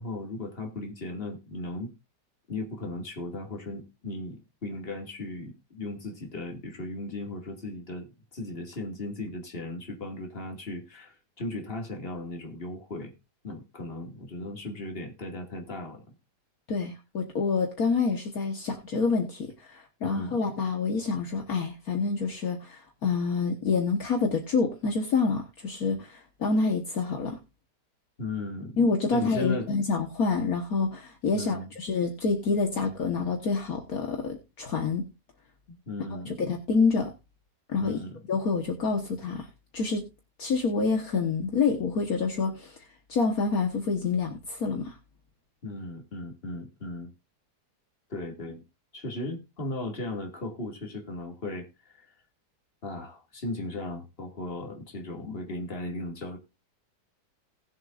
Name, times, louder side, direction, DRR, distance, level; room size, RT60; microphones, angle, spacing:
voice 1, 0.0-1.9 2.5-13.1 13.4-16.0 20.0-20.4 28.2-28.8 29.1-29.7 31.3-31.7 35.7-36.4 37.8-38.2 45.6-47.1 48.1-48.6 48.9-52.1 52.8-56.4, left 2 dB, 35° left, 2 dB, 2.5 m, -36 dB
voice 2, 16.7-27.4 28.8-35.1 36.3-37.1 37.7-38.0 38.3-39.5 39.7-40.0 40.4-42.8 43.1-45.0, left 4 dB, 60° left, 2 dB, 1.8 m, -27 dB
19.5 x 7.5 x 2.5 m, 0.26 s
omnidirectional pair, 1.8 m